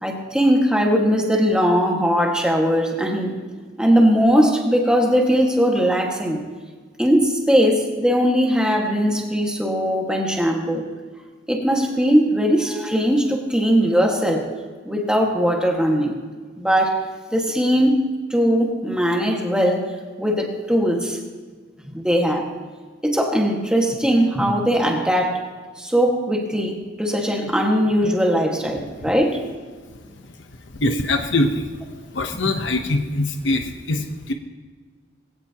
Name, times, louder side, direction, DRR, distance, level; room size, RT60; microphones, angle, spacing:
voice 1, 0.0-3.4 3.8-6.4 7.0-10.8 11.5-14.5 14.8-16.1 16.6-17.0 17.3-18.0 18.3-19.9 20.2-21.2 21.9-22.5 23.0-25.4 25.8-29.4, equal, 5° right, 0 dB, 1.7 m, -19 dB
voice 2, 30.8-31.7 32.1-34.3, left 2 dB, 70° left, 5 dB, 1.0 m, -23 dB
20.5 x 17.0 x 3.0 m, 1.5 s
head